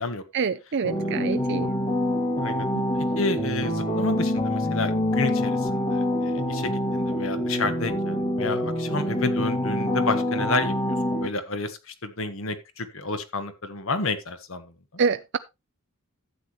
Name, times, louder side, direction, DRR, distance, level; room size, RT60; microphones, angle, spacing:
voice 1, 0.3-1.7 2.7-2.8 15.0-15.4, right 5 dB, 55° right, 0.5 m, -26 dB
sound 1, 0.8-11.3, left 1 dB, 30° left, 2.3 m, -26 dB
voice 2, 2.3-2.7 3.0-10.7 11.1-14.7, left 3 dB, 65° left, 1.5 m, -30 dB
12.5 x 8.4 x 3.1 m
head